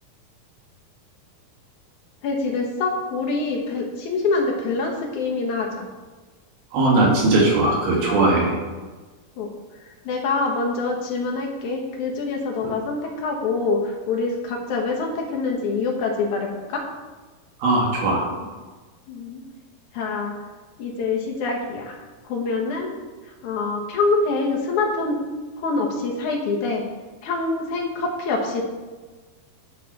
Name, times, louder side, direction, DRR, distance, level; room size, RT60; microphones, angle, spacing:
voice 1, 2.2-5.9 9.4-9.5 10.0-16.8 19.1-19.4 19.9-20.3 20.8-22.0 22.2-23.0 23.4-25.2 25.6-26.8 27.2-28.6, left 3 dB, 60° left, 0 dB, 2.4 m, -25 dB
voice 2, 6.7-8.6 12.6-12.7 17.6-18.2, right 2 dB, 75° right, -2 dB, 3.8 m, -19 dB
10.0 x 7.3 x 4.2 m, 1.3 s
omnidirectional pair, 4.4 m